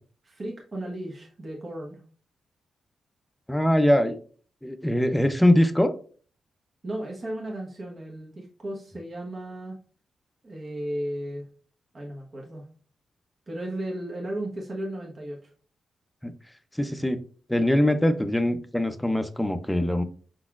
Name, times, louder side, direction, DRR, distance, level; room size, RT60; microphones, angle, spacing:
voice 1, 0.2-2.0 6.8-9.8 10.4-11.4 11.9-12.6 13.5-15.5, right 1 dB, 45° right, -1 dB, 1.0 m, -35 dB
voice 2, 3.5-4.2 4.6-5.9 16.2-16.3 16.8-17.2 17.5-20.0, left 1 dB, 5° left, 9 dB, 0.5 m, -22 dB
4.8 x 4.1 x 2.4 m, 0.42 s
cardioid pair, 70°, 0 cm